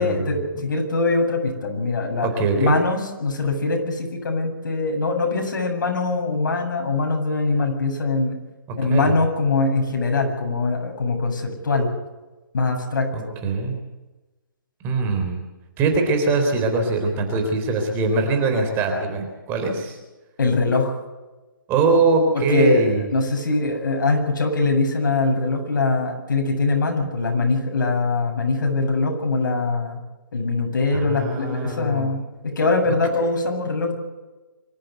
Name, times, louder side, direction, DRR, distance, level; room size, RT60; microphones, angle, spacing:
voice 1, 0.0-2.3 2.5-8.4 8.8-11.9 12.5-13.3 20.4-21.0 22.3-22.8 23.1-30.0 30.3-34.0, left 3 dB, 60° left, 2 dB, 7.9 m, -22 dB
voice 2, 2.2-2.7 8.7-9.1 13.1-13.8 14.8-15.4 15.8-20.0 21.7-23.0 30.9-32.1, right 3 dB, 20° right, 4 dB, 3.8 m, -22 dB
25.5 x 14.5 x 8.2 m, 1.1 s
hypercardioid pair, 160°, 11 cm